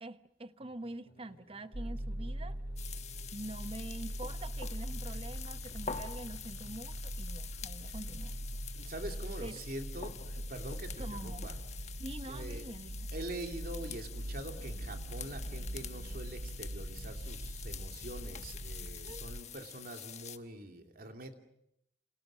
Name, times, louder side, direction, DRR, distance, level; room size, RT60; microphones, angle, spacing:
voice 1, 0.0-2.6 3.3-8.4 9.4-9.6 11.0-11.5 12.0-13.1 19.0-19.3, right 2 dB, 30° right, 1.0 m, -45 dB
sound 1, 0.6-19.4, left 1 dB, 60° left, 5.3 m, -63 dB
sound 2, 1.7-19.4, right 1 dB, 70° right, 1.8 m, -42 dB
sound 3, 2.8-20.4, left 7 dB, 40° left, 1.3 m, -47 dB
voice 2, 8.7-11.6 12.3-12.6 13.1-21.4, right 1 dB, 55° right, 3.0 m, -44 dB
29.0 x 27.5 x 6.3 m
head